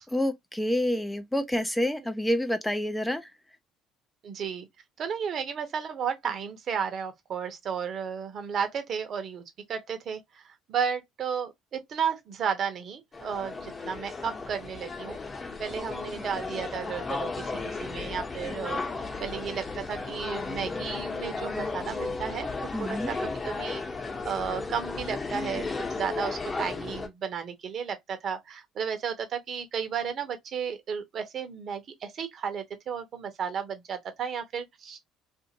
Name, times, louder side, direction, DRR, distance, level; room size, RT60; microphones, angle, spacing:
voice 1, 0.1-3.3 22.7-23.1, left 1 dB, 5° left, 0.4 m, -28 dB
voice 2, 4.2-4.7 5.0-9.4 9.7-15.2 15.6-22.5 22.8-23.8 24.2-35.0, right 7 dB, 50° right, 0.8 m, -33 dB
sound 1, 13.1-27.1, left 3 dB, 30° left, 0.9 m, -35 dB
2.5 x 2.5 x 2.8 m
supercardioid pair, 80°, 0 cm